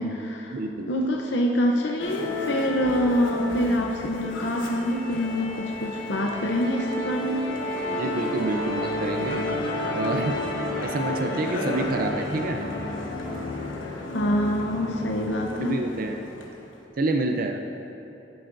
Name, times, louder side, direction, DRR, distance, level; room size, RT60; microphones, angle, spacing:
voice 1, 0.0-0.5 0.9-7.5 14.1-15.8, equal, 65° left, 0 dB, 0.7 m, -25 dB
voice 2, 0.5-0.9 7.9-9.4 9.9-10.4 10.8-12.6 15.6-16.2 17.0-17.6, right 2 dB, 45° right, 4 dB, 0.5 m, -28 dB
Musical instrument, 2.0-16.7, left 2 dB, 85° left, 1.1 m, -31 dB
11.5 x 11.0 x 2.6 m, 2.9 s
head